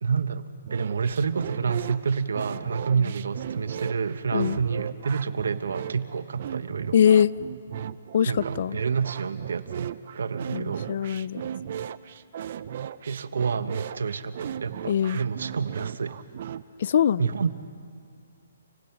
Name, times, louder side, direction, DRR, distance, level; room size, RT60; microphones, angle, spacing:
voice 1, 0.0-7.0 8.2-10.9 13.1-16.2 17.2-17.5, right 5 dB, 80° right, 12 dB, 1.0 m, -28 dB
sound 1, 0.6-16.6, right 9 dB, 45° right, 0.5 m, -36 dB
voice 2, 6.9-7.3 8.1-8.8 10.5-11.4 14.9-15.2 16.8-17.3, left 8 dB, 50° left, 20 dB, 0.4 m, -22 dB
28.5 x 17.5 x 5.8 m, 2.4 s
hypercardioid pair, 165°, 0 cm